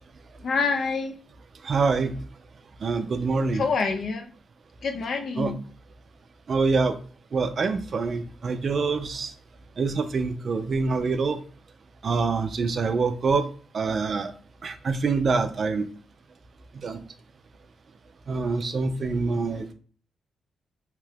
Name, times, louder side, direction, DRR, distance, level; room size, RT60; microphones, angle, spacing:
voice 1, 0.4-1.1 3.5-4.3 4.8-5.6, left 4 dB, 60° left, 5 dB, 0.5 m, -26 dB
voice 2, 1.6-2.1 2.8-3.6 5.4-5.5 6.5-7.0 7.3-9.3 9.8-11.4 12.0-13.5 13.7-14.3 14.6-15.9 16.8-17.0 18.3-19.7, right 4 dB, 50° right, 9 dB, 0.3 m, -25 dB
2.8 x 2.3 x 3.3 m, 0.42 s
cardioid pair, 100°, 0 cm